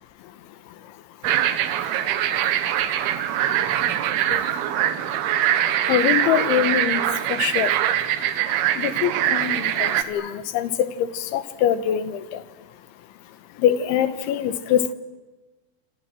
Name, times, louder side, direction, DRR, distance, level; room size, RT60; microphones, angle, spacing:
sound 1, 1.2-10.0, right 11 dB, 70° right, 2.8 m, -23 dB
voice 1, 5.9-7.0 7.3-7.7 8.8-12.4 13.6-14.9, left 10 dB, 85° left, 12 dB, 3.8 m, -23 dB
27.5 x 27.0 x 7.7 m, 1.2 s
omnidirectional pair, 5.2 m